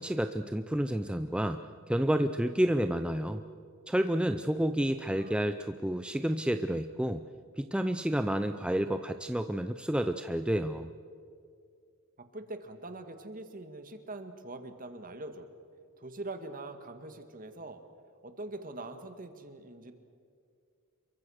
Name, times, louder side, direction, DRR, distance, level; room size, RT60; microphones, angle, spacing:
voice 1, 0.0-3.4 3.9-7.2 7.5-10.9, right 1 dB, 5° right, 9 dB, 0.5 m, -30 dB
voice 2, 5.1-5.5 12.2-15.5 16.0-17.8 18.2-19.9, right 2 dB, 40° right, 8 dB, 1.9 m, -43 dB
28.0 x 23.5 x 6.5 m, 2.3 s
head